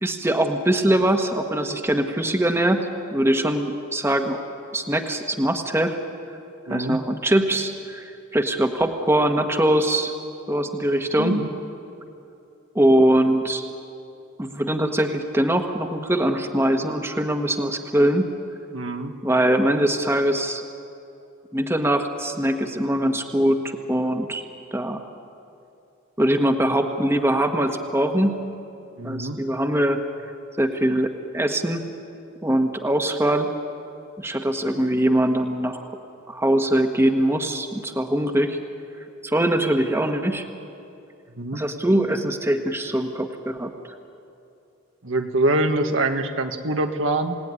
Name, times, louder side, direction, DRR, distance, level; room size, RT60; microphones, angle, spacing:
voice 1, 0.0-4.4 4.7-6.0 6.7-10.1 10.5-11.3 12.7-13.6 14.4-18.3 19.2-20.6 21.5-24.4 24.7-25.0 26.2-28.4 29.0-30.0 30.6-31.8 32.4-33.5 34.2-35.9 36.3-38.6 39.2-40.5 41.5-43.7, right 1 dB, 10° right, 5 dB, 1.4 m, -22 dB
voice 2, 6.7-7.0 11.2-11.5 18.7-19.2 29.0-29.4 41.4-41.6 45.0-47.4, right 2 dB, 75° right, 5 dB, 1.7 m, -24 dB
28.0 x 18.0 x 9.8 m, 2.7 s
head